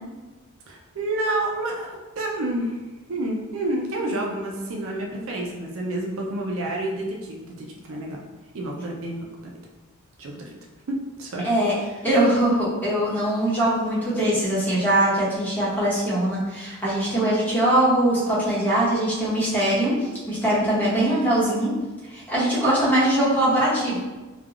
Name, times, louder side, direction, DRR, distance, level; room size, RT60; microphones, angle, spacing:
voice 1, 0.7-2.8 3.1-8.2 8.5-9.5 10.2-10.6 10.9-11.5 11.8-12.0, right 1 dB, 65° right, -1 dB, 0.4 m, -29 dB
voice 2, 11.4-11.7 12.0-21.7 22.1-24.0, right 1 dB, 10° left, -10 dB, 1.0 m, -22 dB
3.2 x 2.2 x 2.3 m, 1.2 s
head